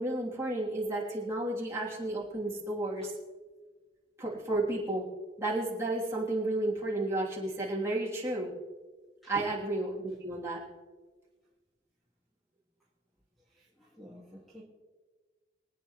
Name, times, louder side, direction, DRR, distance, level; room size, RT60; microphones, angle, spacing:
voice 1, 0.0-3.1 4.2-5.0 5.4-8.5 9.3-10.6, right 2 dB, 15° right, -6 dB, 3.1 m, -32 dB
voice 2, 13.5-14.6, equal, ahead, -6 dB, 1.9 m, -48 dB
25.0 x 9.0 x 3.1 m, 1.4 s
head